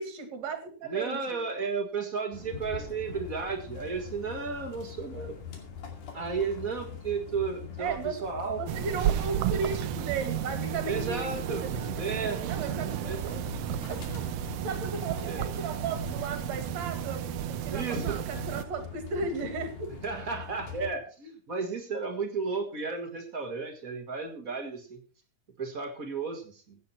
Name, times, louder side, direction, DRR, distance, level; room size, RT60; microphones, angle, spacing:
voice 1, 0.0-1.4 7.8-8.2 8.6-12.9 13.9-14.2 14.6-19.9, right 4 dB, 60° right, 7 dB, 3.1 m, -35 dB
voice 2, 0.8-5.3 6.1-8.8 10.8-11.7 12.0-12.4 13.0-13.4 15.2-15.5 17.7-18.2 20.0-25.0 25.6-26.8, right 5 dB, 35° right, 3 dB, 1.8 m, -33 dB
sound 1, 2.3-20.9, left 7 dB, 75° left, 3.9 m, -42 dB
sound 2, 8.7-18.6, right 13 dB, 80° right, 1.4 m, -33 dB
16.0 x 8.9 x 4.4 m, 0.39 s
omnidirectional pair, 3.6 m